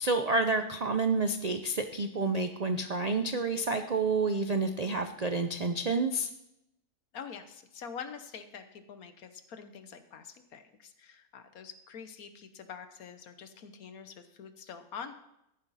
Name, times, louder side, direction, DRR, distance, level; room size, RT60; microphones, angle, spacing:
voice 1, 0.0-6.3, right 3 dB, 60° right, 7 dB, 0.4 m, -29 dB
voice 2, 7.1-15.1, left 7 dB, 70° left, 9 dB, 1.4 m, -45 dB
14.0 x 11.0 x 4.1 m, 0.83 s
omnidirectional pair, 1.6 m